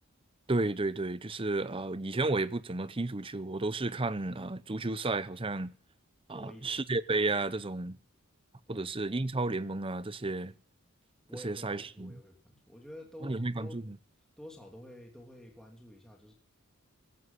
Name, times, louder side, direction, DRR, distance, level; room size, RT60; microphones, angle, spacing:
voice 1, 0.5-5.7 6.3-8.0 8.7-10.5 11.4-12.1 13.2-13.8, right 2 dB, 25° right, 0.7 m, -32 dB
voice 2, 6.3-6.8 8.7-8.9 11.3-13.9 14.4-16.3, left 1 dB, 5° left, 3.1 m, -50 dB
16.5 x 15.0 x 5.7 m
head